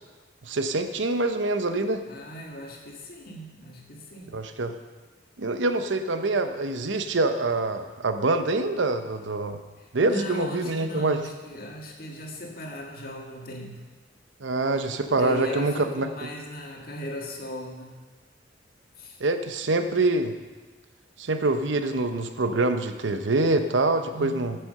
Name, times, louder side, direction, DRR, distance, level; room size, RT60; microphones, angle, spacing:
voice 1, 0.4-2.0 4.3-4.7 5.4-9.6 9.9-11.2 14.4-16.3 19.2-20.3 21.2-24.6, right 2 dB, 85° right, 8 dB, 0.8 m, -25 dB
voice 2, 2.1-4.4 9.8-13.8 15.1-18.0 19.0-19.2 24.1-24.4, equal, 55° left, 0 dB, 1.7 m, -37 dB
9.0 x 7.7 x 6.6 m, 1.3 s
head